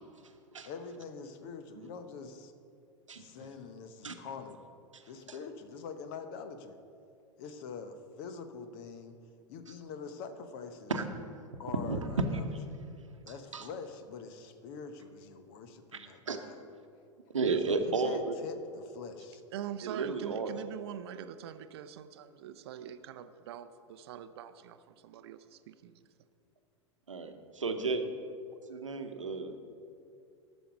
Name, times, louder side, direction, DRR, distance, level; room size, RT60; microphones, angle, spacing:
voice 1, 0.7-2.5 3.2-4.6 5.1-6.8 7.4-9.2 9.5-10.9 11.6-12.4 12.7-12.8 13.3-16.6 17.6-19.4, left 5 dB, 45° left, 9 dB, 0.9 m, -44 dB
voice 2, 15.9-16.4 17.3-18.4 19.8-20.5 27.1-28.0 28.7-29.6, right 4 dB, 80° right, 6 dB, 0.9 m, -33 dB
voice 3, 19.5-25.9, right 10 dB, 55° right, 12 dB, 0.6 m, -43 dB
13.5 x 6.3 x 5.9 m, 2.5 s
figure-of-eight pair, 90°, 16 cm